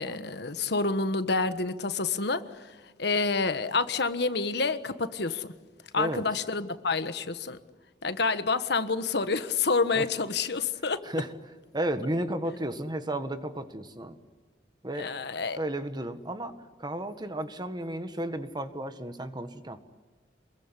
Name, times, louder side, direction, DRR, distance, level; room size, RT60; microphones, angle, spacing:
voice 1, 0.0-5.5 5.9-7.6 8.0-11.0 14.9-15.6, left 4 dB, 65° left, 11 dB, 1.4 m, -28 dB
voice 2, 11.7-14.2 14.8-15.1 15.5-16.5 16.8-19.8, right 1 dB, 25° right, 9 dB, 1.6 m, -33 dB
27.5 x 22.0 x 9.8 m, 1.4 s
head